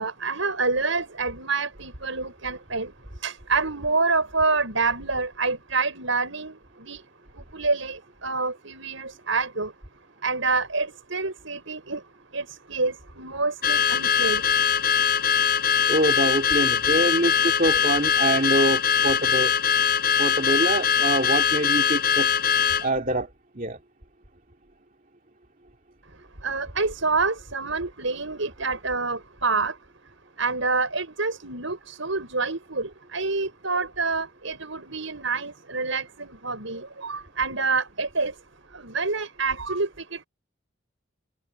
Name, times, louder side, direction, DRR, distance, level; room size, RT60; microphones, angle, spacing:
voice 1, 0.0-2.9 3.2-7.0 7.4-9.7 10.2-12.0 12.3-14.4 26.4-29.7 30.4-38.3 38.7-40.3, right 3 dB, 85° right, 6.1 m, -27 dB
Car / Alarm, 13.6-22.9, left 8 dB, 50° left, 6.0 m, -22 dB
voice 2, 15.9-19.5 20.2-22.3 22.8-23.3 23.6-23.8, right 1 dB, 40° right, 2.8 m, -25 dB
head